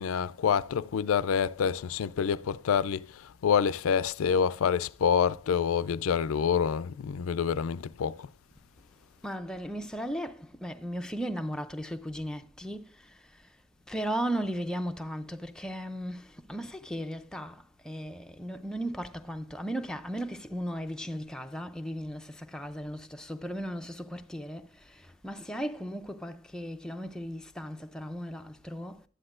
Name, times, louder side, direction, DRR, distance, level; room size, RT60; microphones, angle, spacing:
voice 1, 0.0-8.3, left 7 dB, 70° left, 0.3 m, -27 dB
voice 2, 9.2-13.1 13.9-29.0, equal, 5° left, 0.4 m, -36 dB
11.5 x 9.8 x 2.5 m
head